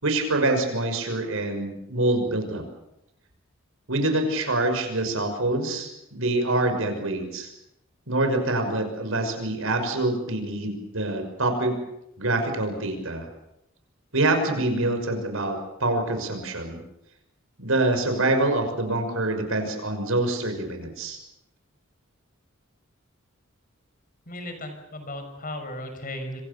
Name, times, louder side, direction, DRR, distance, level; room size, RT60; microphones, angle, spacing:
voice 1, 0.0-2.6 3.9-7.5 8.1-11.8 12.2-13.3 14.1-16.8 17.6-21.2, right 2 dB, 70° right, 6 dB, 6.1 m, -25 dB
voice 2, 24.3-26.4, left 1 dB, 40° left, 6 dB, 6.2 m, -36 dB
27.5 x 25.5 x 7.0 m, 0.86 s
head